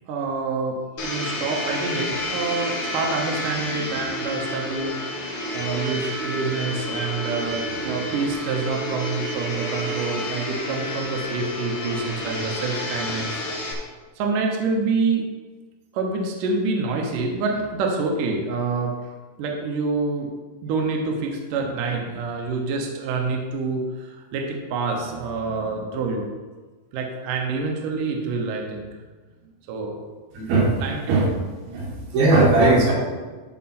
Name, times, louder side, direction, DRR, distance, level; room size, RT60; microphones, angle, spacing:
voice 1, 0.1-0.8 1.0-5.0 5.5-13.4 14.2-15.2 15.9-18.9 19.4-20.3 20.6-26.3 26.9-28.9 29.7-30.0 30.8-31.3, right 4 dB, 70° right, 0 dB, 2.5 m, -27 dB
Domestic sounds home sounds, 1.0-13.7, left 1 dB, 50° left, 1.9 m, -30 dB
voice 2, 30.3-30.7 31.1-31.3 31.7-32.9, right 2 dB, 85° right, -3 dB, 3.9 m, -18 dB
13.0 x 5.2 x 4.3 m, 1.3 s
omnidirectional pair, 4.2 m